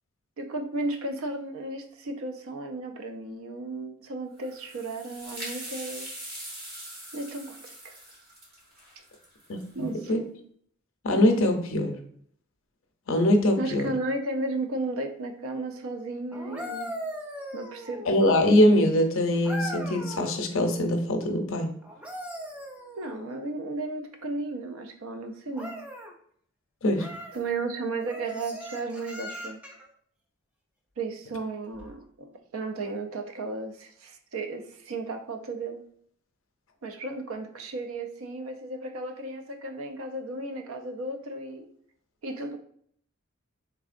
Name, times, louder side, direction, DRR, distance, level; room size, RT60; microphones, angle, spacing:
voice 1, 0.4-6.1 7.1-7.9 9.7-10.2 13.6-16.9 17.5-18.1 23.0-25.7 27.3-29.6 31.0-35.8 36.8-41.7 42.2-42.6, right 2 dB, 70° right, 6 dB, 0.5 m, -34 dB
sound 1, 4.4-9.9, right 1 dB, 40° right, 1.1 m, -42 dB
voice 2, 9.5-10.2 11.0-12.0 13.1-13.9 18.1-21.7 26.8-27.1, left 1 dB, 60° left, 4 dB, 0.5 m, -23 dB
sound 2, 16.3-18.3 19.4-20.4 21.8-23.4 25.5-26.1 27.0-27.4 28.1-29.9 31.7-31.9, equal, 5° right, 0.3 m, -39 dB
3.6 x 3.2 x 2.5 m, 0.62 s
head